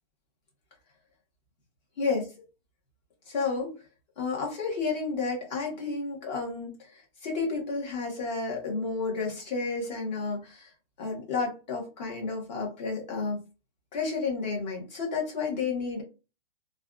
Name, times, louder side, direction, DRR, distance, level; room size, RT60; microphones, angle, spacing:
voice 1, 3.3-3.8 4.2-10.7 11.0-13.4 13.9-16.0, left 4 dB, 45° left, -1 dB, 1.5 m, -31 dB
3.2 x 2.5 x 2.5 m, 0.31 s
hypercardioid pair, 165°, 31 cm